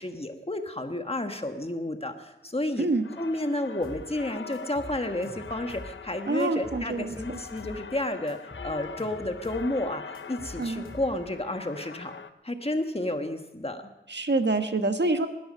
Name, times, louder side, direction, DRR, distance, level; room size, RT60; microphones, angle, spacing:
voice 1, 0.0-2.9 3.2-12.1 12.4-13.8, left 1 dB, 30° left, 6 dB, 1.5 m, -31 dB
sound 1, 3.0-12.3, left 6 dB, 75° left, 0.6 m, -43 dB
sound 2, 3.8-4.1 4.5-6.0 6.4-7.8 8.3-9.7 10.1-11.4, left 1 dB, 50° left, 4.0 m, -44 dB
voice 2, 6.3-7.4 10.6-10.8 14.1-15.3, right 2 dB, 60° right, 7 dB, 1.3 m, -26 dB
19.5 x 10.5 x 5.5 m, 1.1 s
wide cardioid pair, 50°, 20 cm